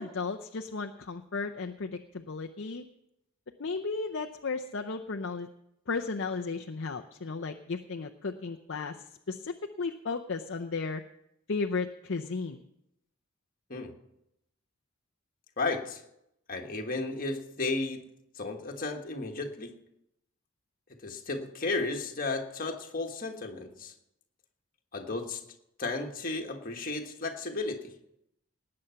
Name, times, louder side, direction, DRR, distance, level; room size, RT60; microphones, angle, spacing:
voice 1, 0.0-2.8 3.6-5.5 5.9-11.0 11.5-12.6, left 4 dB, 55° left, 4 dB, 0.6 m, -34 dB
voice 2, 15.6-16.0 16.5-18.0 18.3-19.7 21.0-23.9 24.9-25.4 25.8-27.9, left 3 dB, 40° left, 3 dB, 1.6 m, -34 dB
19.0 x 8.7 x 5.8 m, 0.83 s
head